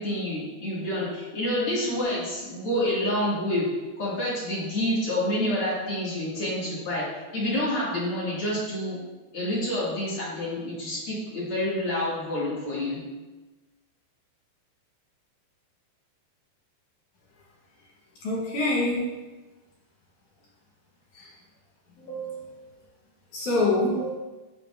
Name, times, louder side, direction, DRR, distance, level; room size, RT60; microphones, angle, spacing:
voice 1, 0.0-3.7 4.0-7.0 7.3-9.0 9.3-13.0, left 1 dB, 40° left, -8 dB, 2.5 m, -28 dB
voice 2, 18.2-19.0 21.2-21.3 22.0-22.7 23.3-24.1, left 2 dB, 65° left, -5 dB, 2.0 m, -26 dB
8.8 x 6.6 x 2.6 m, 1.2 s
omnidirectional pair, 5.1 m